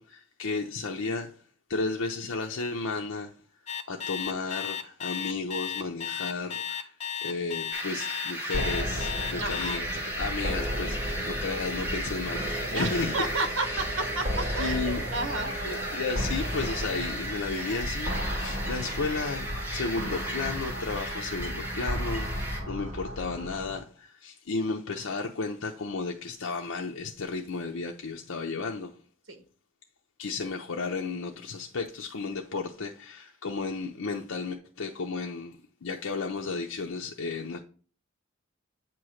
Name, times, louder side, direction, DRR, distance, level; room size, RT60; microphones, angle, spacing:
voice 1, 0.0-1.3 1.7-3.3 3.9-13.1 14.6-15.0 15.6-28.9 30.2-37.6, left 4 dB, 85° left, 0.7 m, -33 dB
Alarm, 3.7-9.8, left 7 dB, 30° left, 0.7 m, -34 dB
sound 1, 7.7-22.6, right 1 dB, 10° right, 1.7 m, -36 dB
sound 2, 8.5-23.8, equal, 35° right, 2.2 m, -34 dB
voice 2, 9.4-9.8 12.7-15.5 29.3-29.4, right 3 dB, 75° right, 1.3 m, -32 dB
8.4 x 3.0 x 6.3 m
head